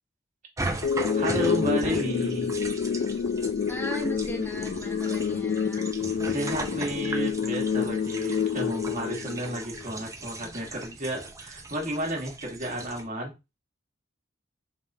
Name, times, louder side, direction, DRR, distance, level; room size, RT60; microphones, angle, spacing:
sound 1, 0.6-13.0, right 2 dB, 15° right, 0.5 m, -38 dB
sound 2, 0.8-9.9, left 6 dB, 55° left, 0.3 m, -28 dB
voice 1, 1.1-2.5 6.2-13.3, right 1 dB, 40° right, -1 dB, 1.4 m, -32 dB
voice 2, 3.7-5.9, equal, 10° left, 0 dB, 0.8 m, -37 dB
4.7 x 3.5 x 2.6 m, 0.25 s
head